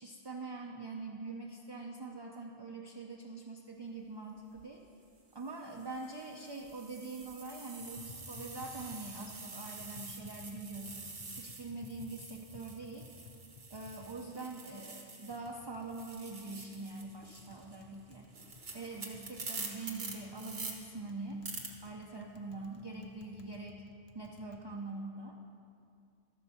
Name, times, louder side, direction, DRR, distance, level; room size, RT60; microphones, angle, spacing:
voice 1, 0.0-4.8 5.3-13.1 13.7-18.3 18.7-21.4 21.8-23.8 24.1-25.4, right 3 dB, 30° right, 0 dB, 0.5 m, -44 dB
sound 1, 4.4-4.6 5.4-15.5 15.8-20.7 21.4-21.7, right 3 dB, 70° right, 1.5 m, -47 dB
Tap, 7.8-24.6, left 4 dB, 85° left, 1.0 m, -57 dB
13.5 x 4.6 x 6.8 m, 2.4 s
omnidirectional pair, 1.1 m